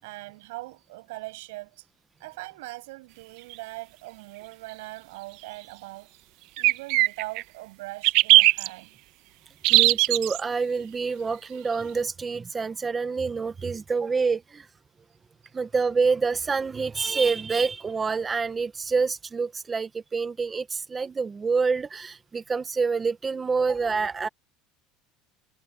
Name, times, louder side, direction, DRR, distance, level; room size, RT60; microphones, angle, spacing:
voice 1, 0.0-1.9 2.2-6.2 6.5-9.0, right 22 dB, 85° right, 6.3 m, -41 dB
sound 1, 3.5-3.6 6.6-7.4 8.0-8.7 9.6-10.4, right 19 dB, 55° right, 1.0 m, -18 dB
voice 2, 9.7-14.7 15.5-24.3, right 4 dB, 15° right, 0.7 m, -27 dB
cardioid pair, 165°, 0 cm